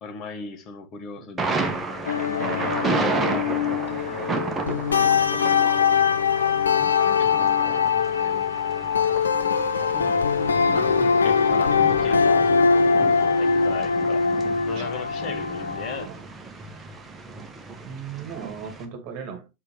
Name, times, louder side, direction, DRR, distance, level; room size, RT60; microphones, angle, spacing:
voice 1, 0.0-2.6 3.9-4.6 5.0-5.3 6.7-8.6 9.9-10.3 10.7-12.6 13.4-14.3 14.7-16.1, left 5 dB, 35° left, 1.8 m, -39 dB
Thunder, 1.4-18.8, right 3 dB, 15° right, 1.4 m, -33 dB
sound 1, 2.0-16.1, left 5 dB, 70° left, 0.6 m, -22 dB
voice 2, 17.8-19.5, right 7 dB, 40° right, 2.3 m, -37 dB
7.5 x 6.3 x 3.2 m
figure-of-eight pair, 90°, 0 cm